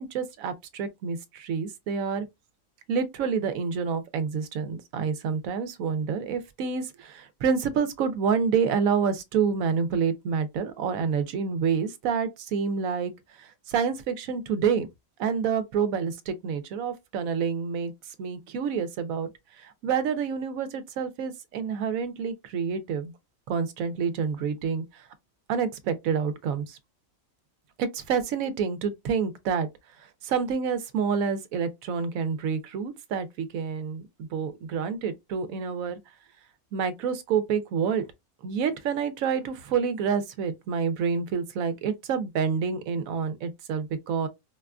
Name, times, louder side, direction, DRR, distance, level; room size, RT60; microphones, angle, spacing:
voice 1, 0.0-2.3 2.9-13.1 13.4-14.9 15.2-19.3 19.6-23.1 23.5-25.1 25.5-26.8 27.8-29.7 30.2-36.0 36.7-38.0 38.4-44.3, right 6 dB, 90° right, 1.0 m, -28 dB
4.6 x 2.2 x 2.4 m
omnidirectional pair, 1.4 m